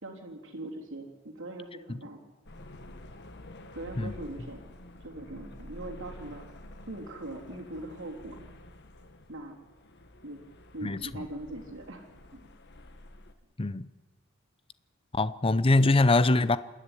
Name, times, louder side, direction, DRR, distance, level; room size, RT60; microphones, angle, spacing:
voice 1, 0.0-2.2 3.7-4.6 5.0-6.4 6.9-8.4 9.3-9.6 10.2-10.4 10.7-12.5, right 1 dB, 65° right, 3.4 m, -41 dB
sound 1, 2.5-13.3, left 1 dB, 55° left, 1.5 m, -49 dB
voice 2, 10.8-11.2 13.6-13.9 15.1-16.6, left 2 dB, 25° left, 0.6 m, -23 dB
27.0 x 10.0 x 10.0 m
head